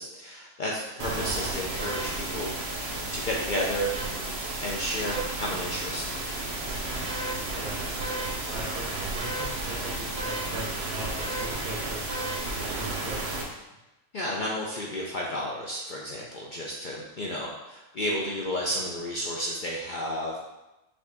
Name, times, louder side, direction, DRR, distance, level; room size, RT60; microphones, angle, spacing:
voice 1, 0.0-2.8 3.1-3.9 4.6-6.0 14.1-20.4, equal, 60° left, -3 dB, 0.5 m, -32 dB
sound 1, 1.0-13.4, right 2 dB, 55° right, 0.9 m, -32 dB
voice 2, 7.5-7.8 8.4-12.0 12.5-13.4, right 2 dB, 80° right, -1 dB, 1.4 m, -40 dB
5.2 x 2.6 x 3.4 m, 1.0 s
omnidirectional pair, 1.4 m